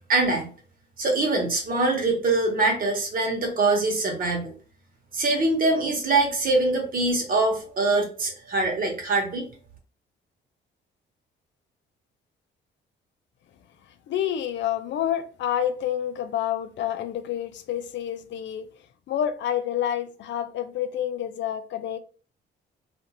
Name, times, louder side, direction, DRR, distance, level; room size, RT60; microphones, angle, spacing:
voice 1, 0.1-0.5 1.0-4.5 5.1-9.5, right 2 dB, 45° right, 1.1 m, -23 dB
voice 2, 14.1-18.7 19.1-22.0, left 10 dB, 65° left, 0.4 m, -28 dB
2.5 x 2.5 x 2.8 m
cardioid pair, 90°, 20 cm